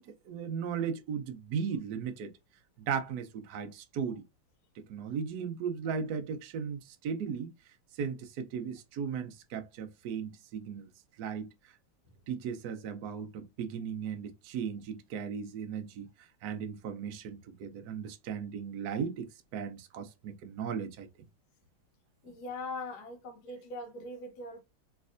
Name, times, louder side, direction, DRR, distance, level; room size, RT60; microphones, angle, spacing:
voice 1, 0.0-2.3 2.9-4.2 4.8-7.5 7.9-10.8 11.2-11.5 12.3-21.1, right 7 dB, 80° right, 0.8 m, -36 dB
voice 2, 22.2-24.6, left 2 dB, 55° left, 1.3 m, -41 dB
3.4 x 3.2 x 2.5 m
omnidirectional pair, 2.4 m